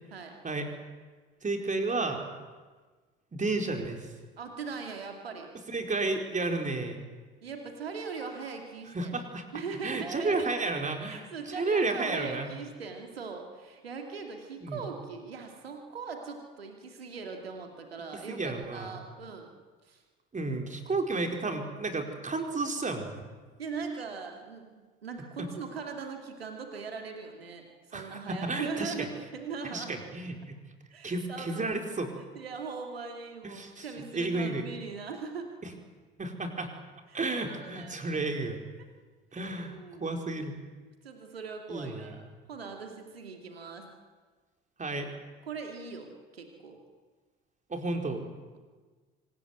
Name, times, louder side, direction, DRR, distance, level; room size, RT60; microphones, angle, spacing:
voice 1, 1.4-2.2 3.3-4.1 5.7-7.0 8.9-9.4 9.8-12.5 14.6-14.8 18.3-19.0 20.3-23.2 25.4-25.5 27.9-29.1 29.7-30.5 31.0-32.1 33.4-33.9 34.1-34.7 35.6-35.7 36.2-36.7 37.1-38.6 39.3-39.7 40.0-40.5 41.7-42.2 44.8-45.1 47.7-48.2, right 3 dB, 25° right, 4 dB, 4.6 m, -32 dB
voice 2, 4.4-5.5 7.4-9.1 9.5-10.8 11.1-19.5 19.8-20.0 23.6-29.9 30.9-31.7 32.3-35.5 37.1-38.2 39.3-40.0 41.0-42.2 42.5-43.9 45.4-46.8, right 5 dB, 85° right, 4 dB, 2.5 m, -40 dB
25.0 x 18.0 x 9.5 m, 1.4 s
figure-of-eight pair, 55°, 29 cm